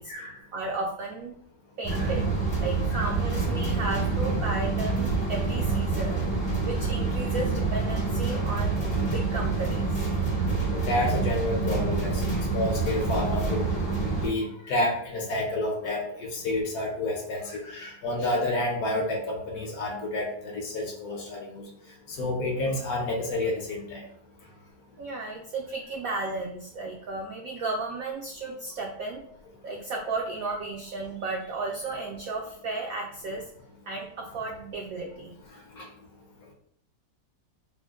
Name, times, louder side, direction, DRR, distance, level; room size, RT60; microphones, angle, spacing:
voice 1, 0.5-1.3 1.8-2.3 2.6-6.4 6.6-10.1 25.0-29.2 29.6-33.5 33.9-35.3, right 3 dB, 85° right, 0 dB, 0.7 m, -34 dB
sound 1, 1.8-14.3, right 3 dB, 30° left, 0.5 m, -27 dB
voice 2, 10.7-12.2 12.5-13.7 14.2-21.6 22.1-24.0 35.8-35.9, left 1 dB, 65° left, 0 dB, 1.0 m, -29 dB
3.7 x 2.0 x 3.5 m, 0.66 s
omnidirectional pair, 2.0 m